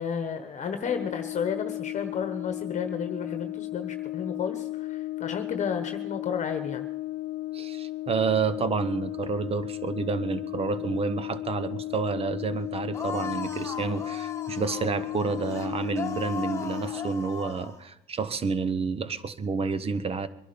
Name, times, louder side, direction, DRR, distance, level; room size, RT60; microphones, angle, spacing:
voice 1, 0.0-6.9, left 6 dB, 45° left, 7 dB, 1.2 m, -32 dB
Brass instrument, 0.8-17.2, left 17 dB, 80° left, 0.6 m, -35 dB
voice 2, 7.5-20.3, right 5 dB, 35° right, 14 dB, 1.0 m, -29 dB
sound 1, 12.9-17.8, left 5 dB, 15° left, 1.5 m, -38 dB
22.5 x 11.5 x 5.2 m, 0.83 s
cardioid pair, 110°, 17 cm